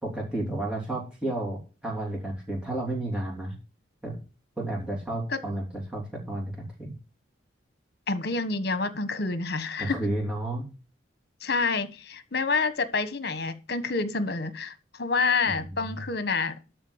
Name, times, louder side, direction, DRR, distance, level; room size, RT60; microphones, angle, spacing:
voice 1, 0.0-1.6 1.8-3.5 4.0-4.2 4.6-6.9 9.8-10.7 15.4-15.6, right 1 dB, 5° right, 3.3 m, -31 dB
voice 2, 8.1-10.0 11.4-16.5, left 4 dB, 55° left, 1.4 m, -28 dB
13.0 x 4.5 x 8.1 m
head